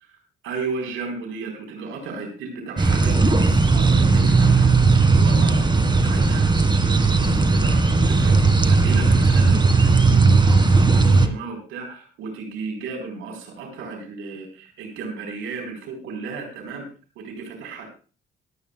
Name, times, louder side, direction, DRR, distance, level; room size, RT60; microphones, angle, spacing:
voice 1, 0.4-16.8 17.2-17.9, right 4 dB, 90° right, 3 dB, 4.3 m, -34 dB
sound 1, 2.8-11.3, right 3 dB, 20° right, 1.8 m, -17 dB
25.5 x 8.9 x 2.3 m, 0.36 s
cardioid pair, 90°, 20 cm